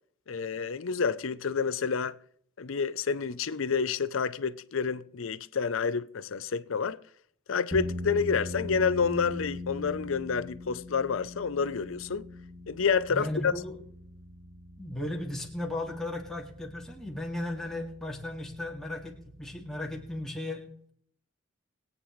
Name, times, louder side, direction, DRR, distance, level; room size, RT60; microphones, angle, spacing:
voice 1, 0.3-2.2 2.6-7.0 7.5-12.2 12.7-13.5, left 5 dB, 80° left, 0.6 m, -29 dB
sound 1, 7.7-20.2, left 1 dB, 30° right, 1.9 m, -42 dB
voice 2, 13.1-13.8 14.8-20.6, left 1 dB, ahead, 2.0 m, -36 dB
22.0 x 8.8 x 3.2 m
head